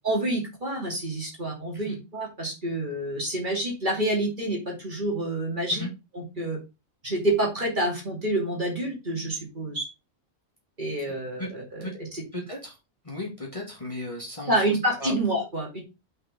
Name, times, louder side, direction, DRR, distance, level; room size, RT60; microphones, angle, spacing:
voice 1, 0.0-5.9 6.1-6.6 7.0-9.8 10.8-11.9 14.5-15.8, right 1 dB, 40° right, -1 dB, 2.7 m, -28 dB
voice 2, 12.3-12.8 13.0-15.1, left 1 dB, 25° left, -2 dB, 2.1 m, -36 dB
5.7 x 5.5 x 5.0 m, 0.25 s
omnidirectional pair, 1.3 m